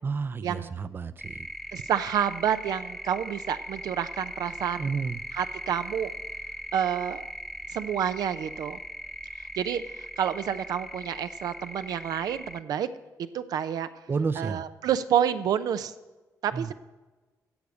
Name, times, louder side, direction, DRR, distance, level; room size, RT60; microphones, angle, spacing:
voice 1, 0.0-1.5 4.8-5.2 14.1-14.6 16.5-16.7, right 5 dB, 35° right, 14 dB, 0.5 m, -31 dB
sound 1, 1.2-12.6, equal, ahead, 0.9 m, -39 dB
voice 2, 1.7-4.9 5.3-6.1 6.7-7.2 7.7-8.8 9.6-12.9 13.2-13.9 14.4-15.9 16.4-16.7, right 9 dB, 80° right, 12 dB, 0.6 m, -29 dB
15.0 x 5.0 x 8.3 m, 1.2 s
cardioid pair, 90°, 7 cm